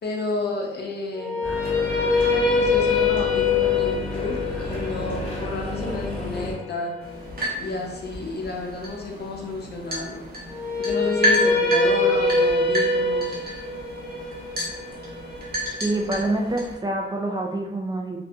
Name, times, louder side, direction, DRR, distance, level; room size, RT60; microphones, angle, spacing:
voice 1, 0.0-1.5 2.3-7.0 7.6-10.2 10.8-13.5, left 3 dB, 60° left, 0 dB, 0.6 m, -31 dB
sound 1, 1.1-7.2 10.5-16.6, left 3 dB, 10° left, 1.0 m, -24 dB
sound 2, 1.4-6.5, left 1 dB, 30° left, 1.2 m, -31 dB
sound 3, 7.0-16.7, equal, 55° right, 0.9 m, -31 dB
voice 2, 15.8-18.2, right 2 dB, 20° right, 1 dB, 0.4 m, -26 dB
2.5 x 2.1 x 2.6 m, 0.95 s
cardioid pair, 70°, 19 cm